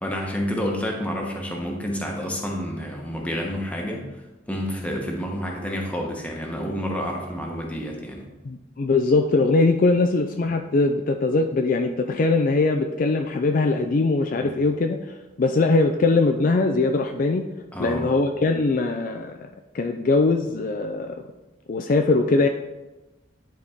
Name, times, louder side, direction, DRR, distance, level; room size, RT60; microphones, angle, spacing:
voice 1, 0.0-4.2 4.5-8.3 14.3-14.5 17.7-18.1, equal, 10° left, 0 dB, 1.1 m, -29 dB
voice 2, 8.4-17.5 17.8-19.5 19.7-21.1 21.7-22.5, left 3 dB, 45° left, 5 dB, 0.4 m, -21 dB
10.5 x 4.2 x 3.5 m, 1.1 s
head